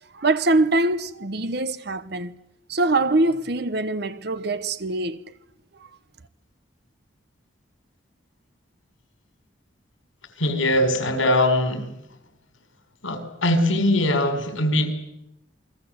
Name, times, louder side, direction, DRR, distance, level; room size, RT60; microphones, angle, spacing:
voice 1, 0.1-2.4 2.7-5.2, right 2 dB, 55° right, 1.0 m, -23 dB
voice 2, 10.4-11.9 13.0-15.0, left 1 dB, 80° left, 5.1 m, -21 dB
28.5 x 22.0 x 8.1 m
head